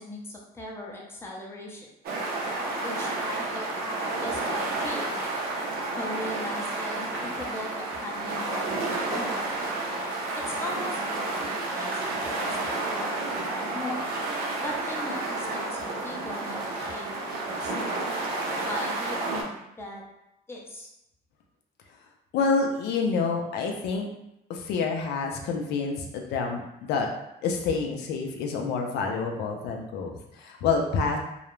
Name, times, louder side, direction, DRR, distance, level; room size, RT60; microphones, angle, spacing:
voice 1, 0.0-1.9 2.8-5.0 6.0-9.8 10.4-12.6 12.8-14.0 14.6-18.0 18.6-20.0 20.5-20.9, left 1 dB, 15° left, -3 dB, 0.6 m, -39 dB
sound 1, 2.0-19.4, right 2 dB, 65° right, 0.6 m, -31 dB
voice 2, 22.3-24.1 24.5-27.1 27.4-31.2, left 4 dB, 80° left, 2 dB, 0.4 m, -28 dB
2.3 x 2.0 x 3.0 m, 0.85 s
cardioid pair, 110°, 17 cm